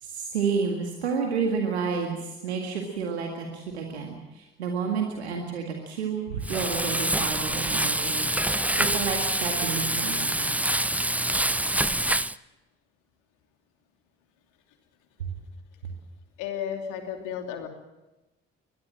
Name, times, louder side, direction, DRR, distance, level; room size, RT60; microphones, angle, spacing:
voice 1, 0.0-8.3 8.7-10.5 15.2-15.3 15.8-15.9, right 5 dB, 85° right, 2 dB, 2.0 m, -30 dB
Frying (food), 6.4-12.3, right 1 dB, 5° right, 0.7 m, -26 dB
voice 2, 16.4-17.7, left 8 dB, 70° left, 5 dB, 3.0 m, -33 dB
23.0 x 20.0 x 7.6 m, 1.0 s
figure-of-eight pair, 40°, 32 cm